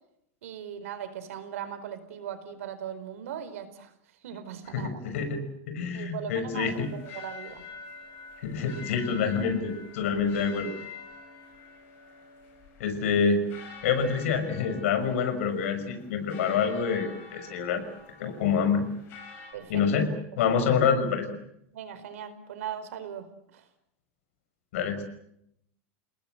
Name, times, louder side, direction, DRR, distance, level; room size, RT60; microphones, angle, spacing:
voice 1, 0.4-3.9 4.2-5.0 5.9-7.6 19.5-19.8 21.7-23.3 23.5-23.7, right 9 dB, 75° right, 11 dB, 4.6 m, -39 dB
voice 2, 4.7-6.9 8.4-10.8 12.8-13.4 13.8-17.8 18.2-18.8 19.7-20.1 20.4-21.3 24.7-25.0, left 6 dB, 65° left, 8 dB, 6.0 m, -27 dB
sound 1, 6.6-19.5, left 5 dB, 30° left, 7.6 m, -47 dB
30.0 x 19.5 x 8.1 m, 0.76 s
supercardioid pair, 170°, 8 cm